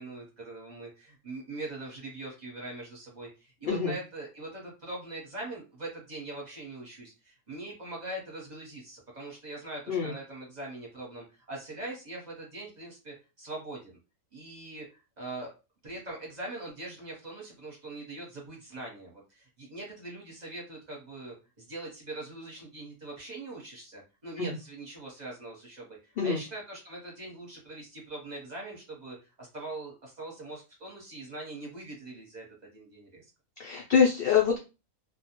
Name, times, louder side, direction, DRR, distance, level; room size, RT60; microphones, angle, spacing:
voice 1, 0.0-13.9 14.3-15.5 15.8-33.2, right 2 dB, 35° right, -2 dB, 0.8 m, -42 dB
voice 2, 33.6-34.6, left 6 dB, 70° left, 0 dB, 0.5 m, -24 dB
2.3 x 2.0 x 2.9 m, 0.29 s
omnidirectional pair, 1.5 m